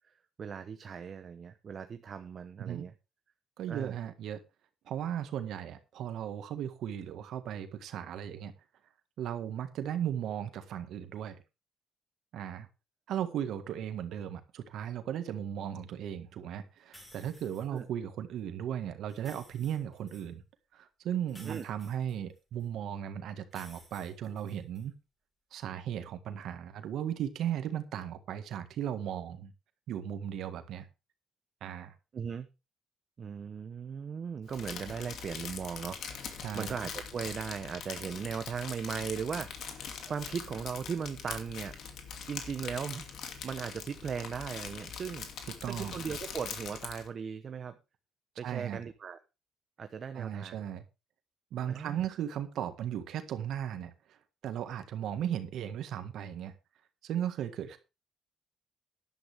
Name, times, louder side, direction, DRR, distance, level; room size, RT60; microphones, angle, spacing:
voice 1, 0.4-2.9 3.7-3.9 17.7-17.8 21.4-21.6 32.1-32.5 33.2-41.8 42.3-45.3 45.7-47.8 48.4-49.2 49.8-50.6 51.7-52.0, right 6 dB, 40° right, 0.9 m, -38 dB
voice 2, 3.6-4.4 4.8-8.5 9.2-11.4 12.3-12.7 13.1-20.4 20.7-24.9 25.5-29.5 29.9-30.9 31.6-31.9 36.4-36.8 45.6-46.0 48.4-48.8 50.1-50.8 51.5-54.2 54.4-56.5 57.0-57.8, right 10 dB, 75° right, 1.6 m, -36 dB
sound 1, 16.9-17.8 19.1-20.3 21.3-22.7 23.5-24.8, left 1 dB, 15° left, 5.8 m, -56 dB
Crumpling crinkling, 34.5-47.1, left 6 dB, 65° left, 2.6 m, -42 dB
13.0 x 11.0 x 3.5 m
cardioid pair, 125°, 0 cm